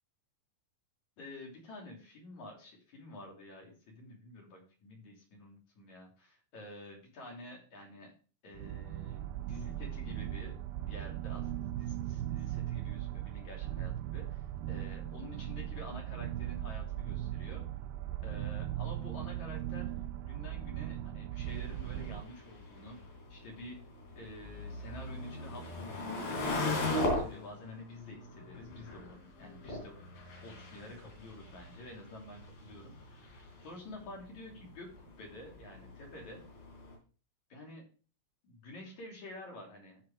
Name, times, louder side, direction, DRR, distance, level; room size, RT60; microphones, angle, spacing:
voice 1, 1.2-8.1 8.4-17.6 18.2-19.9 20.2-23.8 24.2-30.0 30.4-36.4 37.5-37.8 38.4-40.0, left 1 dB, 55° left, -1 dB, 4.1 m, -49 dB
sound 1, 8.5-22.2, right 12 dB, 85° right, 2.3 m, -38 dB
sound 2, 21.4-36.9, left 2 dB, 70° left, 4.8 m, -40 dB
14.5 x 5.2 x 3.5 m, 0.38 s
omnidirectional pair, 4.1 m